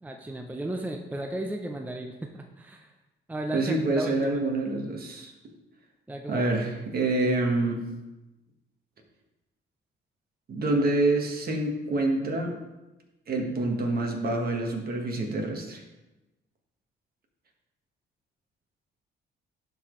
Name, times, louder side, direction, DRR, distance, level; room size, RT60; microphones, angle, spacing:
voice 1, 0.0-2.9 3.3-4.4 6.1-6.5 7.0-7.2, right 1 dB, 10° right, 3 dB, 0.5 m, -35 dB
voice 2, 3.5-5.3 6.3-7.8 10.5-12.5 13.3-15.8, right 2 dB, 50° right, 1 dB, 1.5 m, -27 dB
11.5 x 4.1 x 3.2 m, 1.0 s
cardioid pair, 90°, 20 cm